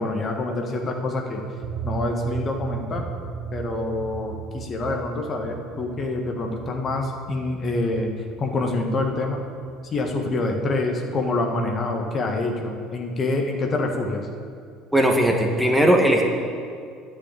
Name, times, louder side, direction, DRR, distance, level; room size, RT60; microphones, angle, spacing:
voice 1, 0.0-1.4 1.8-3.0 3.5-8.1 8.4-9.4 9.9-14.2, left 2 dB, 35° left, 2 dB, 1.5 m, -26 dB
sound 1, 1.6-10.1, right 6 dB, 45° right, 1.2 m, -35 dB
voice 2, 14.9-16.3, right 1 dB, ahead, 1 dB, 1.6 m, -18 dB
10.5 x 6.2 x 8.6 m, 2.3 s
figure-of-eight pair, 60°, 0 cm